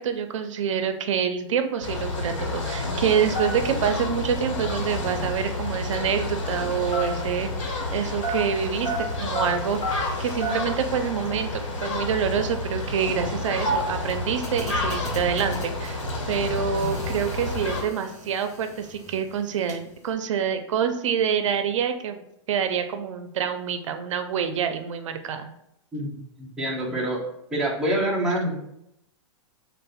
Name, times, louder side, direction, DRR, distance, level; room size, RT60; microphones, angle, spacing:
voice 1, 0.0-8.9 9.2-22.2 22.5-25.5, right 7 dB, 75° right, 8 dB, 0.4 m, -27 dB
sound 1, 1.8-17.8, left 2 dB, 80° left, 1.0 m, -30 dB
sound 2, 3.1-7.9 8.2-10.8 11.0-11.1 11.3-11.6 12.2-19.8, right 1 dB, 35° left, 1.0 m, -33 dB
voice 2, 25.9-27.2 27.5-28.5, right 1 dB, 5° right, -5 dB, 0.3 m, -26 dB
3.9 x 2.1 x 2.4 m, 0.78 s
supercardioid pair, 165°, 16 cm